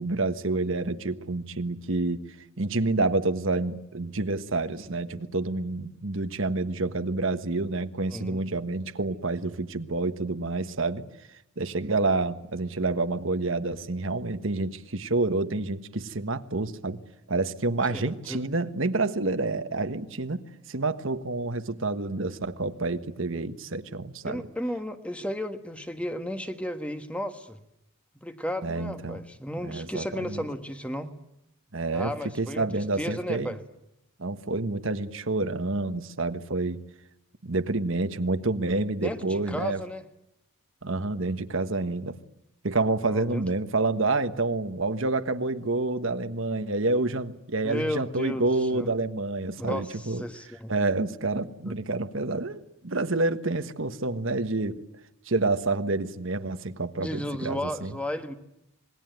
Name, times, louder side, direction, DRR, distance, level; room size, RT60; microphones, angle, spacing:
voice 1, 0.0-2.2 2.6-11.0 11.6-17.0 17.3-24.4 28.6-29.2 29.6-30.4 31.7-33.5 34.2-36.8 37.4-39.8 40.8-42.2 42.6-50.2 50.7-54.7 55.3-57.9, right 2 dB, 65° right, 10 dB, 1.4 m, -28 dB
voice 2, 8.1-8.4 17.9-18.4 24.3-27.6 28.2-31.1 31.9-33.6 39.0-40.0 43.1-43.4 47.6-48.4 48.7-48.9 49.6-50.7 51.6-51.8 57.0-58.3, equal, 5° left, 8 dB, 1.5 m, -34 dB
27.0 x 21.0 x 9.2 m, 0.82 s
head